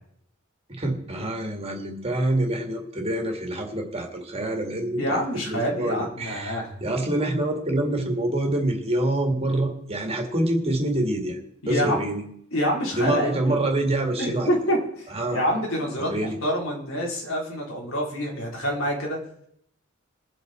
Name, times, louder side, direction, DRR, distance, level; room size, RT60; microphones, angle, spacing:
voice 1, 0.7-11.4 11.6-12.2 12.9-14.5 15.1-15.4 16.1-16.4, right 1 dB, 30° right, 3 dB, 2.1 m, -26 dB
voice 2, 5.0-6.7 11.6-11.9 12.5-13.7 14.2-19.2, equal, 80° left, -2 dB, 4.1 m, -27 dB
22.0 x 8.0 x 4.4 m, 0.72 s
head